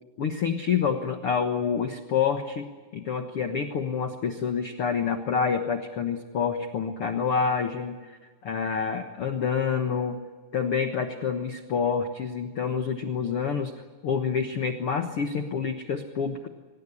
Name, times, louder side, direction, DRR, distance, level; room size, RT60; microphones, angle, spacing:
voice 1, 0.2-10.2 10.5-13.7 14.0-16.5, left 6 dB, 85° left, 6 dB, 1.2 m, -28 dB
25.0 x 19.5 x 9.8 m, 1.4 s
omnidirectional pair, 4.7 m